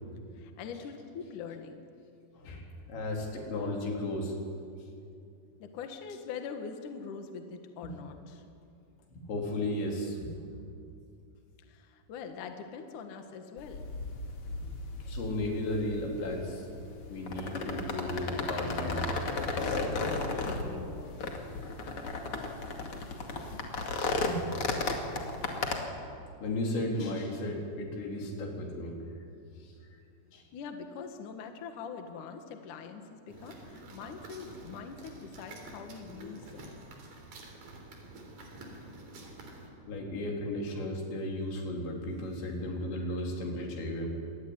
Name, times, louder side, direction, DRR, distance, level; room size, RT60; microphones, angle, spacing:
voice 1, 0.3-1.9 5.6-8.4 11.7-13.9 20.0-21.2 30.5-36.8, left 6 dB, 55° left, 6 dB, 2.6 m, -43 dB
voice 2, 2.3-4.3 7.8-7.9 9.3-10.3 15.1-16.7 17.1-19.3 19.6-19.8 24.3-24.4 26.4-29.0 29.6-29.7 30.3-30.5 39.9-44.1, left 1 dB, 85° left, 1 dB, 5.9 m, -34 dB
sound 1, 13.6-25.8, left 3 dB, 40° left, 2.5 m, -35 dB
sound 2, 33.3-39.7, right 2 dB, 55° right, 5.0 m, -49 dB
25.5 x 19.0 x 9.7 m, 2.4 s
omnidirectional pair, 5.0 m